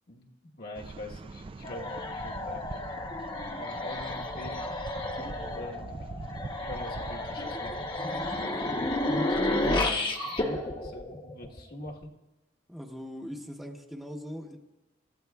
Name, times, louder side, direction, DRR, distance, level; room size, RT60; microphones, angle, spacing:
voice 1, 0.6-2.9 3.4-4.7 5.1-6.1 6.7-7.9 8.3-8.5 9.3-12.1, left 1 dB, 55° left, -1 dB, 1.3 m, -44 dB
sound 1, 0.7-9.2, right 3 dB, 30° right, 0.3 m, -43 dB
sound 2, 1.6-11.9, left 2 dB, 25° left, 0.9 m, -32 dB
voice 2, 12.7-14.6, equal, ahead, 1 dB, 0.9 m, -40 dB
26.5 x 13.5 x 2.3 m, 1.0 s
head